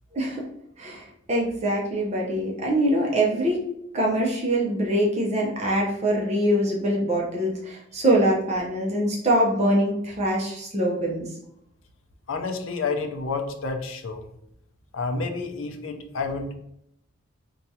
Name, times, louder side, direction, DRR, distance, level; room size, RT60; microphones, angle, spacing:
voice 1, 0.1-0.4 0.8-3.7 3.9-11.3, right 1 dB, 35° right, -2 dB, 0.6 m, -24 dB
voice 2, 12.3-14.3 14.9-16.5, left 4 dB, 85° left, 5 dB, 0.5 m, -29 dB
4.4 x 2.3 x 2.7 m, 0.75 s
head